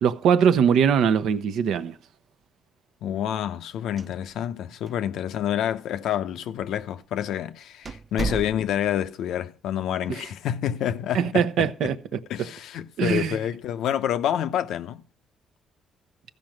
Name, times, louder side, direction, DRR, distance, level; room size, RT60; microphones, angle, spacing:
voice 1, 0.0-1.9 11.1-11.9 13.0-13.4, right 7 dB, 80° right, 0.8 m, -21 dB
voice 2, 3.0-11.9 12.3-15.0, left 10 dB, 80° left, 0.7 m, -28 dB
sound 1, 3.8-4.6 4.9-5.0 5.7-5.8 6.6-6.8 7.2-7.3 7.8-9.0, right 4 dB, 35° right, 0.6 m, -33 dB
14.5 x 5.3 x 7.4 m
cardioid pair, 90°, 0 cm